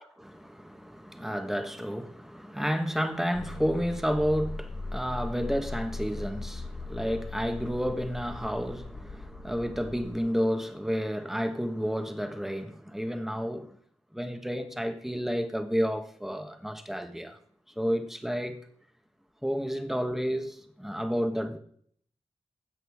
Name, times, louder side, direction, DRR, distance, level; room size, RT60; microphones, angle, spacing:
voice 1, 0.0-13.8 14.1-17.4 17.8-18.6 19.4-21.6, equal, 5° right, 1.2 m, -31 dB
sound 1, 3.3-10.2, left 3 dB, 80° left, 4.1 m, -39 dB
16.0 x 8.0 x 3.5 m
wide cardioid pair, 70°, 12 cm